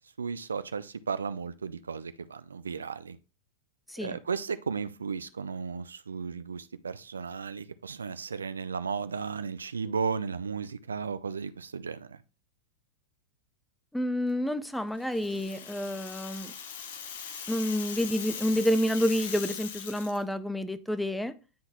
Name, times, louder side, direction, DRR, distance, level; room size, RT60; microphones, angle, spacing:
voice 1, 0.2-3.2 4.0-12.2, right 5 dB, 85° right, 0.4 m, -35 dB
voice 2, 13.9-16.5 17.5-21.3, equal, 5° left, 0.5 m, -29 dB
Rattle (instrument), 15.0-20.2, left 7 dB, 70° left, 1.0 m, -40 dB
10.0 x 3.8 x 3.0 m
hypercardioid pair, 95°, 0 cm